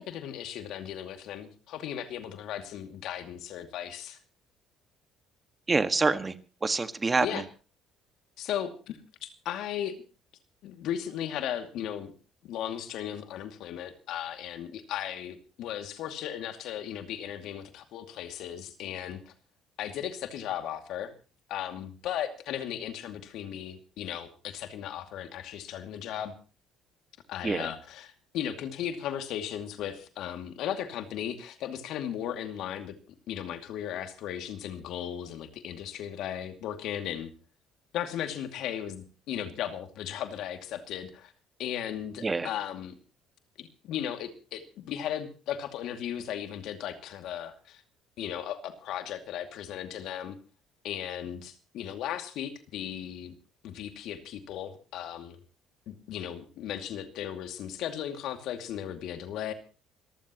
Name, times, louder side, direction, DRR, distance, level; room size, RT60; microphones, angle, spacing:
voice 1, 0.0-4.2 7.2-7.4 8.4-9.9 10.6-12.1 12.4-19.3 19.8-21.1 21.5-26.3 27.3-33.0 33.3-37.3 37.9-41.3 41.6-42.9 43.6-47.8 48.2-50.4 50.8-53.3 53.6-55.4 55.9-59.5, left 10 dB, 70° left, 7 dB, 2.5 m, -36 dB
voice 2, 5.7-7.4 27.4-27.7 42.2-42.5, right 3 dB, 25° right, 10 dB, 1.8 m, -27 dB
26.5 x 14.5 x 3.1 m, 0.36 s
supercardioid pair, 75°, 0 cm